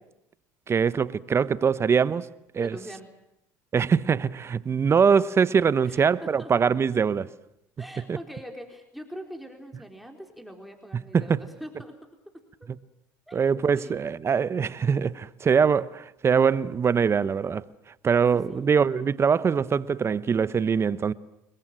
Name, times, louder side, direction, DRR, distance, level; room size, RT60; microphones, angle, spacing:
voice 1, 0.7-2.3 2.5-2.8 3.7-7.3 8.1-8.2 10.9-11.4 13.3-17.6 18.0-21.1, right 6 dB, 30° right, 1.0 m, -23 dB
voice 2, 2.6-3.1 5.8-6.5 7.8-11.9 13.3-14.0 18.3-18.7, equal, ahead, 4.1 m, -43 dB
29.0 x 21.5 x 7.6 m
hypercardioid pair, 80°, 8 cm